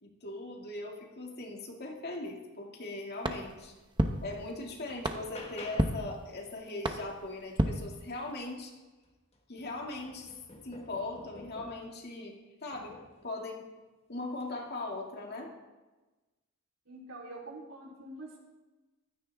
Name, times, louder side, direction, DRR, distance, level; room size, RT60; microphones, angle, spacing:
voice 1, 0.0-3.7 4.2-8.7 9.5-10.3 10.6-13.0 13.2-13.7 14.1-15.5, left 2 dB, 50° left, 0 dB, 2.2 m, -40 dB
sound 1, 3.2-8.6, right 1 dB, 20° right, 0.9 m, -34 dB
sound 2, 3.8-3.9 4.3-6.1 8.5-8.6 9.0-12.0 12.7-13.3 14.3-14.6, left 1 dB, 30° left, 1.5 m, -50 dB
voice 2, 16.9-18.4, right 2 dB, 70° right, -2 dB, 3.7 m, -45 dB
15.5 x 13.0 x 3.5 m, 1.2 s
head